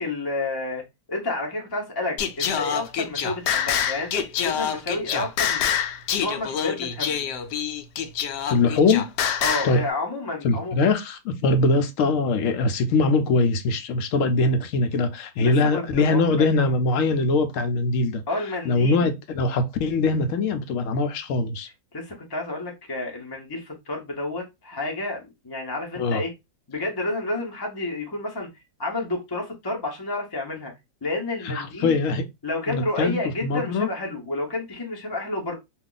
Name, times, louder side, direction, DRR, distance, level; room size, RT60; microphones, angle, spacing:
voice 1, 0.0-5.7 6.2-7.2 9.4-10.9 15.4-16.5 18.3-19.0 21.9-26.3 26.7-28.5 28.8-30.7 31.0-32.0 32.4-35.5, left 2 dB, 25° left, 0.5 m, -30 dB
Singing, 2.2-9.8, left 8 dB, 85° left, 1.2 m, -26 dB
voice 2, 8.5-9.0 9.6-9.8 10.4-18.2 18.6-21.7 26.0-26.2 31.4-32.2 32.7-33.9, left 3 dB, 65° left, 0.8 m, -22 dB
2.7 x 2.4 x 3.7 m
omnidirectional pair, 1.8 m